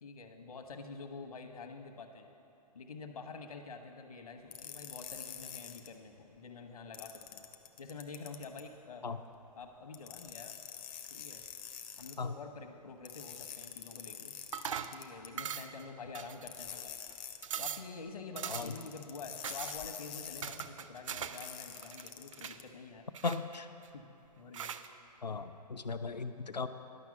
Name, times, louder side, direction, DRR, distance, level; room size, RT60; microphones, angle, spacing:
voice 1, 0.0-2.3 2.7-7.5 7.8-9.0 9.6-10.5 11.1-11.4 12.0-14.4 14.9-17.0 17.6-23.0 23.9-24.0 24.4-24.7, left 4 dB, 60° left, 5 dB, 1.0 m, -47 dB
sound 1, 4.5-5.9 6.9-8.6 9.9-12.2 13.1-15.3 16.5-17.5 18.4-20.6 21.4-22.6, left 9 dB, 20° left, 0.4 m, -46 dB
sound 2, 14.5-15.0 15.4-15.8 16.1-16.8 17.1-17.2 17.4-17.9 18.4-18.8 19.4-19.8 20.4-21.5 21.8-22.6 23.1-23.9 24.5-24.9, right 8 dB, 50° right, 0.4 m, -41 dB
voice 2, 23.2-23.7 25.2-26.7, left 4 dB, 80° left, 9 dB, 0.6 m, -37 dB
11.0 x 6.0 x 7.0 m, 2.9 s
figure-of-eight pair, 125°, 21 cm